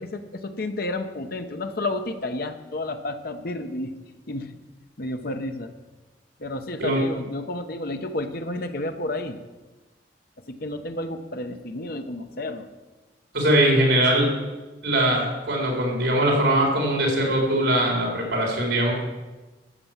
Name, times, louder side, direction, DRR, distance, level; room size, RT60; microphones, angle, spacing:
voice 1, 0.0-3.9 4.3-4.5 5.0-5.7 6.4-9.4 10.6-12.7, left 2 dB, 60° left, 7 dB, 0.9 m, -31 dB
voice 2, 13.3-14.3 14.8-18.9, right 1 dB, 70° right, -1 dB, 3.9 m, -21 dB
13.5 x 6.2 x 7.2 m, 1.2 s
head